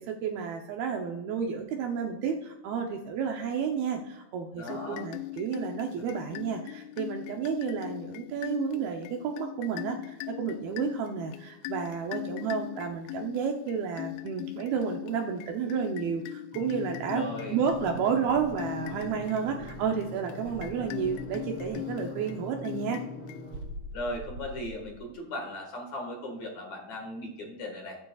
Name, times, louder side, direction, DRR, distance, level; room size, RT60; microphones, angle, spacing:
voice 1, 0.1-23.0, right 6 dB, 75° right, 2 dB, 2.3 m, -31 dB
voice 2, 4.5-5.1 17.1-17.6 23.9-28.0, left 1 dB, 55° left, 1 dB, 2.4 m, -37 dB
sound 1, 4.6-23.8, left 18 dB, 90° left, 2.9 m, -41 dB
sound 2, 16.5-23.6, equal, 5° left, 2.7 m, -43 dB
Insect, 17.7-20.0 20.4-21.9 23.5-25.2, equal, 60° right, 1.4 m, -45 dB
22.5 x 9.6 x 2.4 m, 0.95 s
omnidirectional pair, 5.2 m